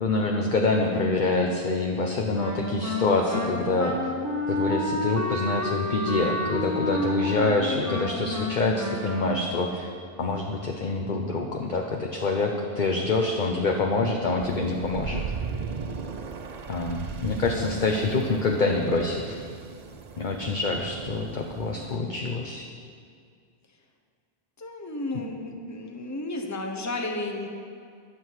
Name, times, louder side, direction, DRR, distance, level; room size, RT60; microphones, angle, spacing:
voice 1, 0.0-3.9 4.5-9.9 10.2-15.2 16.7-19.4 20.2-22.7, left 3 dB, 50° left, 1 dB, 1.0 m, -26 dB
Wind instrument woodwind instrument, 2.3-9.7, left 1 dB, 15° right, 1.5 m, -30 dB
sound 1, 14.4-22.0, right 5 dB, 45° right, 0.7 m, -37 dB
voice 2, 24.6-27.5, left 2 dB, 15° left, 3 dB, 1.1 m, -33 dB
22.0 x 7.9 x 4.8 m, 2.2 s
omnidirectional pair, 1.0 m